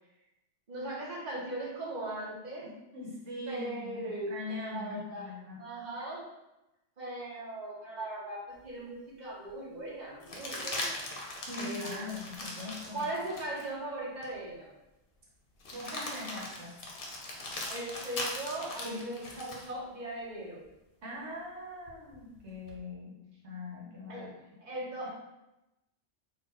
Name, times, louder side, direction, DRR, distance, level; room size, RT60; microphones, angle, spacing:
voice 1, 0.7-2.7 3.5-5.3 5.6-6.3 7.0-11.1 11.6-12.0 12.9-14.7 17.7-20.6 24.1-24.3 24.6-25.1, right 1 dB, 40° right, -6 dB, 1.3 m, -39 dB
voice 2, 2.6-5.6 11.4-13.1 15.7-16.8 18.8-19.0 21.0-24.6 25.0-25.1, left 2 dB, 80° right, -3 dB, 1.2 m, -42 dB
sound 1, 8.6-8.7 10.2-13.7 14.2-14.3 15.6-19.7 21.9-22.7, left 2 dB, 55° left, 0.9 m, -40 dB
4.1 x 2.4 x 4.1 m, 0.94 s
omnidirectional pair, 1.2 m